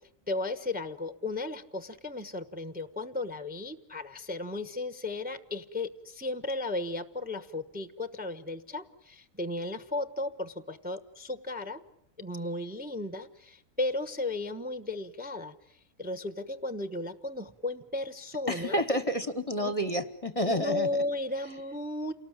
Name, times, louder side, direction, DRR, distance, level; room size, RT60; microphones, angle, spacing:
voice 1, 0.3-11.8 12.2-15.5 16.0-18.8 19.6-19.7 20.5-22.1, left 2 dB, 10° right, 11 dB, 0.9 m, -35 dB
voice 2, 18.5-20.9, equal, 30° left, 11 dB, 1.1 m, -29 dB
28.5 x 19.0 x 8.9 m, 0.77 s
omnidirectional pair, 1.4 m